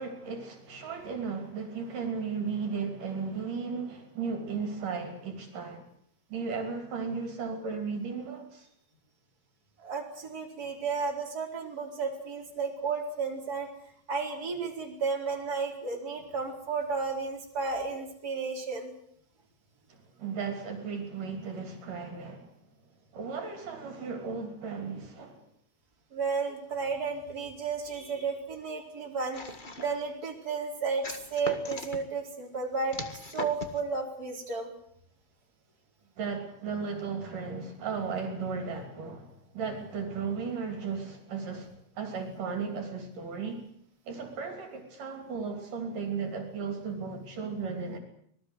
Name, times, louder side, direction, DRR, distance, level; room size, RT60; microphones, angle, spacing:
voice 1, 0.0-5.8 6.3-8.7 19.9-22.5 23.1-25.4 36.2-43.6 44.1-48.0, right 5 dB, 65° right, 6 dB, 4.7 m, -35 dB
voice 2, 9.8-13.7 14.1-18.9 26.1-34.7, right 4 dB, 25° right, 1 dB, 4.9 m, -33 dB
sound 1, 29.3-30.1 31.0-32.0 32.9-33.8, left 2 dB, 30° left, 0.8 m, -39 dB
25.5 x 20.0 x 8.1 m, 0.68 s
omnidirectional pair, 4.0 m